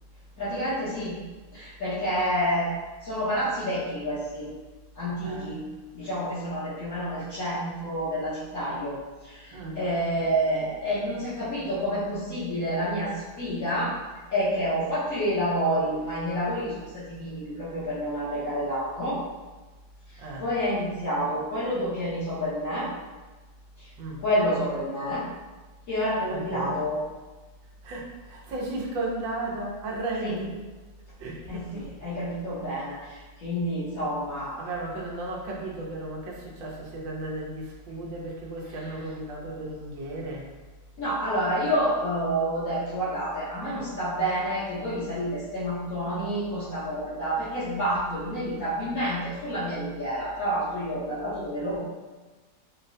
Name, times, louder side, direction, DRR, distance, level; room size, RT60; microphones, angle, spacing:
voice 1, 0.4-1.2 1.5-2.7 3.0-4.5 4.9-5.6 5.9-9.0 9.2-13.9 14.3-19.2 20.1-22.9 23.8-23.9 24.2-25.2 25.9-27.0 30.2-30.4 31.5-34.6 41.0-51.8, equal, 55° left, -13 dB, 1.3 m, -29 dB
voice 2, 10.2-10.7 20.2-20.5 24.0-24.2 26.3-26.8 27.8-30.6 31.2-31.9 34.6-40.5, right 2 dB, 90° right, -2 dB, 1.5 m, -35 dB
4.8 x 2.2 x 2.6 m, 1.2 s
omnidirectional pair, 2.0 m